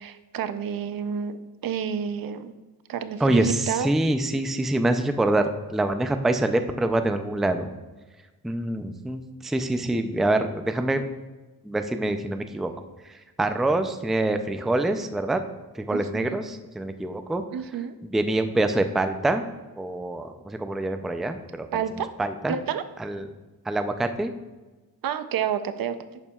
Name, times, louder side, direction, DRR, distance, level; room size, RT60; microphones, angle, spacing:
voice 1, 0.0-1.4 1.6-2.5 2.9-3.9 15.9-16.4 17.5-17.9 21.7-22.1 22.5-22.8 25.0-26.2, right 8 dB, 70° right, 11 dB, 0.6 m, -29 dB
voice 2, 3.2-7.7 8.4-11.0 11.6-12.7 13.1-15.4 15.7-17.4 18.0-19.4 19.8-21.7 22.2-22.6 23.0-23.3 23.7-24.3, right 2 dB, ahead, 7 dB, 0.4 m, -25 dB
10.5 x 8.7 x 2.3 m, 1.2 s
wide cardioid pair, 135°, 36 cm